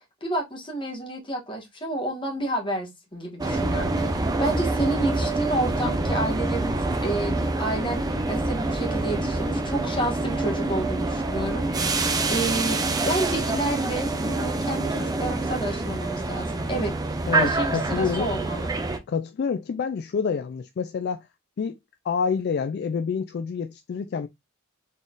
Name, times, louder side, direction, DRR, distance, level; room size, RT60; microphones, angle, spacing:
voice 1, 0.2-18.7, right 1 dB, 25° left, 1.5 m, -30 dB
sound 1, 3.4-19.0, right 2 dB, 20° right, 0.5 m, -26 dB
voice 2, 17.3-18.3 19.1-21.3 21.6-21.8 22.0-24.3, left 6 dB, 50° left, 0.3 m, -27 dB
4.0 x 3.7 x 2.4 m
head